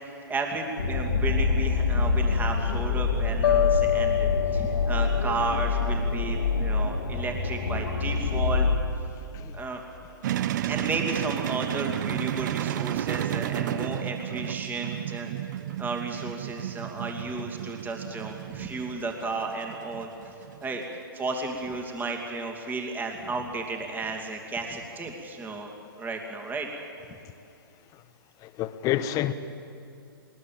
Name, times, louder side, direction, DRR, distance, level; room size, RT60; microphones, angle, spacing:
voice 1, 0.3-8.7 9.5-9.8 10.6-15.3 15.8-20.1 20.6-20.8 21.1-25.7 26.0-26.7, right 3 dB, 15° right, 2.6 m, -33 dB
sound 1, 0.8-8.8, left 4 dB, 85° left, 2.4 m, -26 dB
sound 2, 3.4-6.5, left 11 dB, 60° left, 0.6 m, -27 dB
sound 3, 10.2-21.0, right 12 dB, 50° right, 0.7 m, -32 dB
voice 2, 28.4-29.3, left 12 dB, 25° left, 1.0 m, -28 dB
20.5 x 20.5 x 7.7 m
hypercardioid pair, 125°, 12 cm